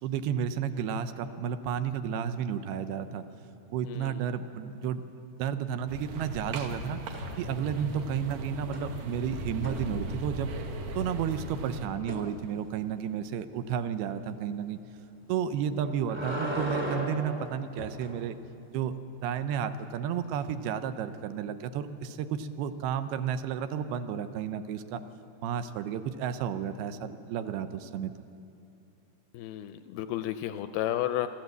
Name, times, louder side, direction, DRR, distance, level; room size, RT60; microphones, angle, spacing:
voice 1, 0.0-3.2 3.7-5.0 5.4-7.0 7.4-10.5 11.0-14.8 15.3-18.4 18.7-19.0 19.2-25.0 25.4-28.1, right 8 dB, 80° right, 10 dB, 2.6 m, -32 dB
voice 2, 3.8-4.2 29.3-31.3, left 13 dB, 80° left, 10 dB, 2.3 m, -32 dB
sound 1, 5.9-11.9, right 1 dB, 60° right, 2.8 m, -38 dB
sound 2, 7.1-7.8 8.1-10.5 12.1-12.3 15.6-18.2 20.4-20.5, equal, 5° right, 1.0 m, -38 dB
25.0 x 14.0 x 8.0 m, 2.8 s
omnidirectional pair, 4.8 m